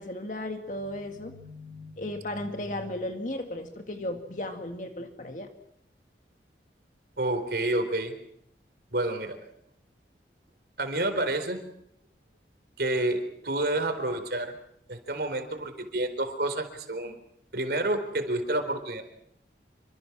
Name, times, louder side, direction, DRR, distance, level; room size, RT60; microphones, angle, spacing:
voice 1, 0.0-5.5, left 1 dB, 45° left, 5 dB, 2.0 m, -35 dB
voice 2, 7.2-8.1 8.9-9.4 10.8-11.6 12.8-14.5 14.9-17.2 17.5-19.0, right 1 dB, 60° right, 8 dB, 4.1 m, -29 dB
27.5 x 25.0 x 6.1 m, 0.74 s
head